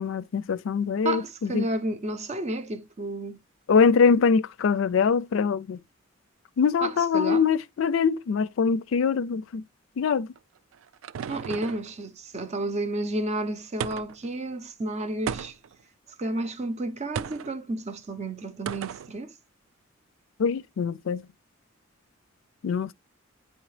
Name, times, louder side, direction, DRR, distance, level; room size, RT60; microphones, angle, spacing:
voice 1, 0.0-1.7 3.7-5.8 6.6-9.6 10.0-10.3 20.4-21.2 22.6-22.9, left 6 dB, 70° left, 0.4 m, -23 dB
voice 2, 1.0-3.4 6.8-7.4 11.3-15.6 16.2-19.3, right 2 dB, 35° right, 0.6 m, -31 dB
sound 1, 10.4-11.9 13.8-14.3 15.3-15.8 17.1-17.5 18.7-19.1, right 7 dB, 80° right, 0.3 m, -34 dB
9.1 x 3.2 x 3.2 m
head